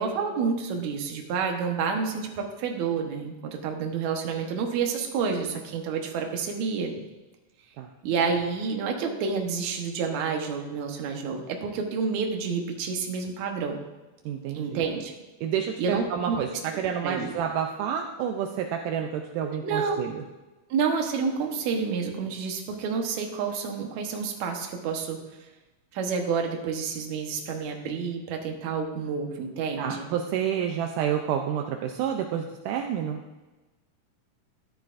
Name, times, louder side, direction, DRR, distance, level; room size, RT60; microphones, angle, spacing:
voice 1, 0.0-6.9 8.0-13.8 14.5-15.1 15.8-16.4 16.7-17.3 19.6-20.0 20.7-25.2 25.9-30.1, right 5 dB, 65° right, 3 dB, 2.3 m, -29 dB
voice 2, 14.3-14.8 15.4-20.2 29.8-33.2, right 8 dB, 80° right, 3 dB, 2.2 m, -29 dB
13.5 x 11.5 x 2.5 m, 1.1 s
omnidirectional pair, 3.7 m